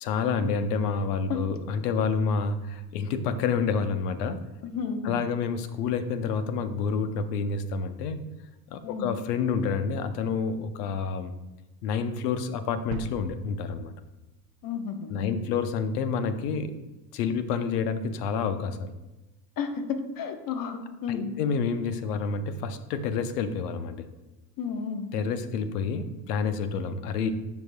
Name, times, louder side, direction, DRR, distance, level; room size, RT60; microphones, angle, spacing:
voice 1, 0.0-4.4 5.0-8.2 8.7-11.3 11.8-13.9 15.1-16.7 17.1-18.9 21.1-24.1 25.1-27.3, left 5 dB, 80° left, 10 dB, 0.8 m, -28 dB
voice 2, 4.6-5.2 8.8-9.1 14.6-15.4 19.6-21.3 24.6-25.1, left 6 dB, 45° left, 7 dB, 1.0 m, -32 dB
sound 1, 12.9-15.0, right 7 dB, 80° right, 0.6 m, -41 dB
8.9 x 5.3 x 2.2 m, 1.0 s
hypercardioid pair, 85°, 47 cm